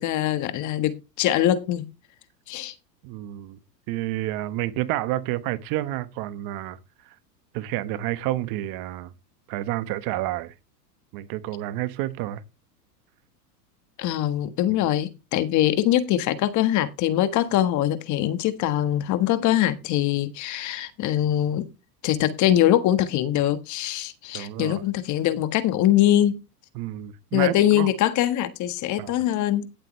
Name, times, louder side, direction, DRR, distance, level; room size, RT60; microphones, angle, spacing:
voice 1, 0.0-1.9 2.5-2.7 14.0-21.7 22.0-26.4 27.3-29.7, left 12 dB, 35° left, 1.5 m, -23 dB
voice 2, 3.0-3.6 3.9-6.8 7.0-7.1 7.5-9.1 9.5-10.5 11.1-12.4 14.7-14.8 24.3-24.8 26.7-27.9 29.0-29.2, right 15 dB, 45° right, 1.3 m, -29 dB
17.0 x 7.7 x 3.2 m
hypercardioid pair, 120°, 49 cm